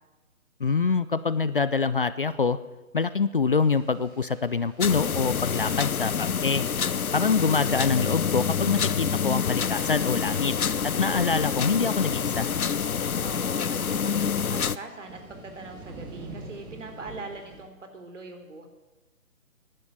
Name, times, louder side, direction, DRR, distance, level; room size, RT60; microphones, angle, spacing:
voice 1, 0.6-2.6 2.9-6.6 7.1-10.5 10.8-12.5, left 5 dB, 40° left, 15 dB, 0.5 m, -25 dB
sound 1, 3.5-17.6, right 2 dB, 10° right, 1.5 m, -49 dB
sound 2, 4.8-14.8, left 7 dB, 85° left, 0.8 m, -27 dB
voice 2, 13.2-18.7, right 3 dB, 60° right, 5 dB, 3.6 m, -42 dB
15.5 x 11.0 x 7.5 m, 1.2 s
figure-of-eight pair, 145°, 42 cm